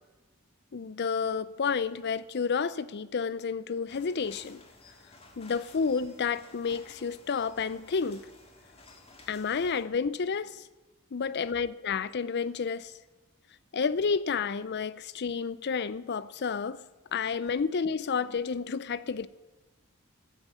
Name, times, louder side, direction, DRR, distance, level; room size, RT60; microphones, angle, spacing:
voice 1, 0.7-4.6 5.4-8.2 9.3-10.6 11.1-12.9 13.7-16.8 17.1-19.3, left 5 dB, 50° left, 0.5 m, -30 dB
sound 1, 3.9-9.8, left 2 dB, 30° left, 1.9 m, -54 dB
13.0 x 9.8 x 8.2 m
head